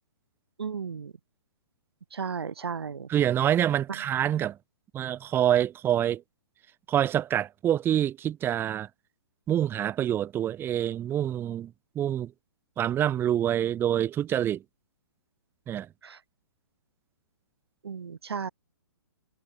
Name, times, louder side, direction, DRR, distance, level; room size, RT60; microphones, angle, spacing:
voice 1, 0.6-1.1 2.1-3.1 3.9-4.0 16.0-16.2 17.8-18.5, right 6 dB, 75° right, 4.3 m, -34 dB
voice 2, 3.1-4.6 4.9-6.2 6.9-8.9 9.5-12.3 12.8-14.6 15.7-15.9, right 11 dB, 15° right, 1.1 m, -26 dB
hypercardioid pair, 130°, 13 cm